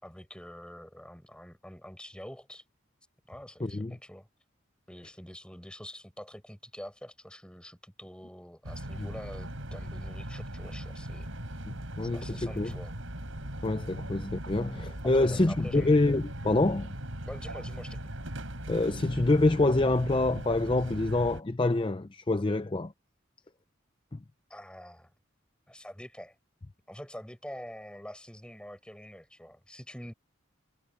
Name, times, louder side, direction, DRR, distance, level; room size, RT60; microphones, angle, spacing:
voice 1, 0.0-2.6 3.3-4.3 4.9-11.3 12.0-12.9 15.0-15.9 17.3-18.0 24.5-25.1 25.7-26.3 26.9-30.1, equal, 5° left, 7.3 m, -45 dB
voice 2, 3.6-3.9 9.0-9.1 11.7-12.7 13.6-16.9 18.7-22.9 24.1-24.2, left 2 dB, 25° left, 0.5 m, -26 dB
sound 1, 8.6-21.4, right 1 dB, 85° right, 4.7 m, -39 dB
head